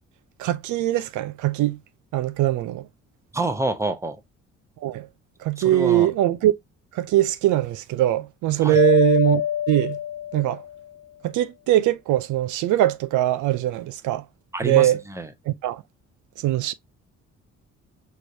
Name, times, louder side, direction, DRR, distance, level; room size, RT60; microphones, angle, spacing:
voice 1, 0.4-1.8 2.1-2.9 4.8-5.1 5.4-6.5 6.9-9.4 9.7-10.0 10.3-10.6 11.2-14.2 14.6-15.0 15.5-15.8 16.4-16.7, right 14 dB, 80° right, 0.5 m, -21 dB
voice 2, 3.3-4.2 5.6-6.1 8.6-8.8 14.5-15.3, right 2 dB, 10° right, 0.8 m, -27 dB
Mallet percussion, 8.7-10.8, left 10 dB, 60° left, 0.4 m, -24 dB
4.5 x 3.2 x 2.6 m
cardioid pair, 90°, 30 cm